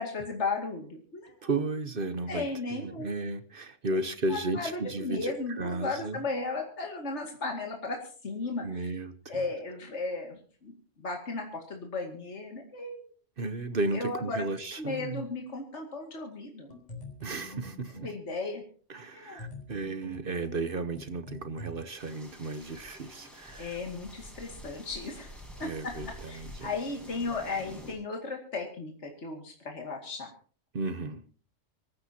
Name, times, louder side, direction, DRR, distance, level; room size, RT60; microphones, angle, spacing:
voice 1, 0.0-1.5 2.3-3.1 3.9-4.0 4.3-8.9 9.3-13.1 13.9-14.4 14.8-16.7 18.0-18.6 19.1-19.4 23.6-25.3 25.6-30.3, left 3 dB, 65° left, 2.6 m, -35 dB
voice 2, 1.4-2.5 2.7-5.3 5.6-6.2 8.6-9.4 13.4-15.3 17.2-18.1 18.9-23.8 25.6-26.7 30.7-31.2, right 2 dB, 50° right, 1.1 m, -34 dB
sound 1, 16.7-18.2 19.4-21.7, left 1 dB, 35° left, 4.5 m, -45 dB
sound 2, 22.0-27.9, equal, ahead, 6.7 m, -48 dB
25.0 x 14.5 x 2.9 m
omnidirectional pair, 1.3 m